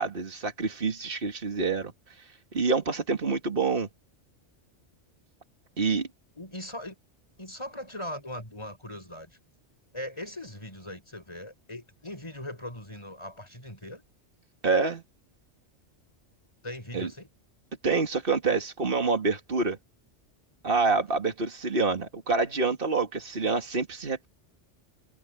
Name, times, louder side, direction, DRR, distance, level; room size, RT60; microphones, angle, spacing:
voice 1, 0.0-1.9 2.5-3.9 5.8-6.1 14.6-15.0 16.9-17.1 17.8-19.8 20.6-24.3, right 4 dB, 50° right, 2.4 m, -27 dB
voice 2, 6.4-6.9 7.4-9.4 9.9-14.0 16.6-17.3 21.1-21.2, left 1 dB, 25° left, 6.4 m, -40 dB
omnidirectional pair, 1.2 m